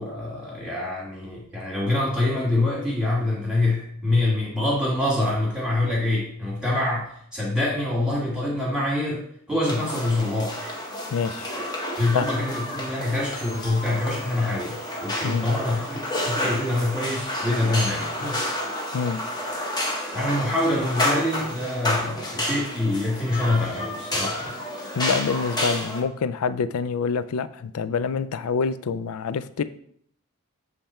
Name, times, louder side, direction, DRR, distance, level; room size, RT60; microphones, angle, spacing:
voice 1, 0.0-10.7 12.0-18.6 20.1-24.5, left 2 dB, 5° right, -6 dB, 1.7 m, -25 dB
sound 1, 9.6-26.0, left 1 dB, 20° left, 1.0 m, -30 dB
voice 2, 11.1-11.5 12.1-12.3 15.2-15.5 18.9-19.2 25.0-29.6, left 5 dB, 80° left, 14 dB, 0.4 m, -26 dB
7.4 x 3.3 x 4.3 m, 0.65 s
head